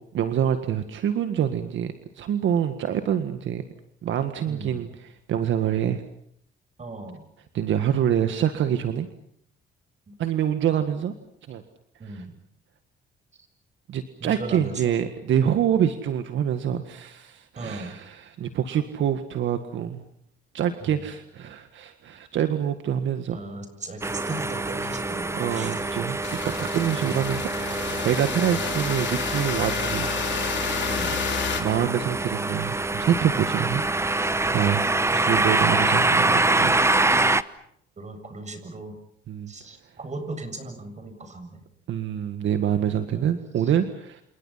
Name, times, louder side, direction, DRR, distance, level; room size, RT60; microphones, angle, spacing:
voice 1, 0.1-3.6 4.0-6.0 7.5-9.1 10.2-11.1 11.5-11.6 12.0-12.3 13.9-20.0 20.5-23.4 25.4-30.1 31.1-34.9 35.1-36.8 39.3-39.5 41.9-44.2, right 9 dB, 75° right, 9 dB, 1.7 m, -26 dB
voice 2, 4.5-4.8 6.8-7.2 10.1-10.2 12.0-12.3 14.2-15.0 17.6-18.0 20.8-21.0 23.3-25.8 27.0-27.3 28.3-28.6 30.9-31.2 38.0-39.0 39.5-41.6 43.1-43.2, right 2 dB, 35° right, 8 dB, 7.3 m, -37 dB
sound 1, 24.0-37.4, right 2 dB, 15° right, 1.0 m, -25 dB
sound 2, 26.2-31.6, left 9 dB, 65° left, 3.1 m, -31 dB
29.0 x 28.5 x 5.8 m, 0.69 s
cardioid pair, 90°, 20 cm